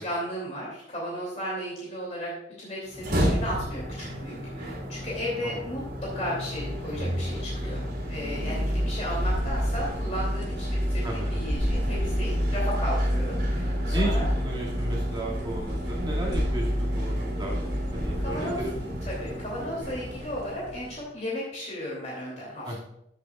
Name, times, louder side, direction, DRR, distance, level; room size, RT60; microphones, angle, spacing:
voice 1, 0.0-2.3 2.6-14.3 18.2-18.6 19.1-22.8, equal, 40° left, -5 dB, 2.8 m, -35 dB
sound 1, 2.9-21.0, equal, 70° right, 2.9 m, -29 dB
sound 2, 9.0-16.7 17.3-19.5 19.8-21.0, equal, 65° left, 1.6 m, -35 dB
voice 2, 11.0-11.4 13.9-19.0 22.6-22.8, right 1 dB, 25° right, -4 dB, 2.3 m, -34 dB
15.0 x 6.8 x 2.4 m, 0.79 s
head